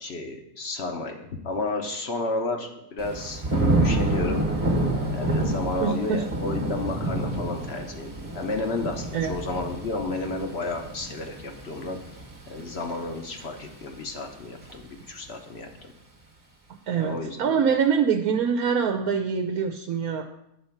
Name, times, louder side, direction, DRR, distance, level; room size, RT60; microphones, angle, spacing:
voice 1, 0.0-3.4 3.8-4.4 5.1-12.0 12.5-15.7 17.0-17.6, left 2 dB, 50° left, 3 dB, 1.0 m, -32 dB
Thunder / Rain, 3.0-13.9 14.3-14.8, right 1 dB, 25° right, 1.1 m, -28 dB
voice 2, 5.8-6.2 9.1-9.3 16.9-20.2, right 6 dB, 85° right, 4 dB, 1.1 m, -24 dB
9.0 x 4.3 x 5.8 m, 0.82 s
omnidirectional pair, 1.5 m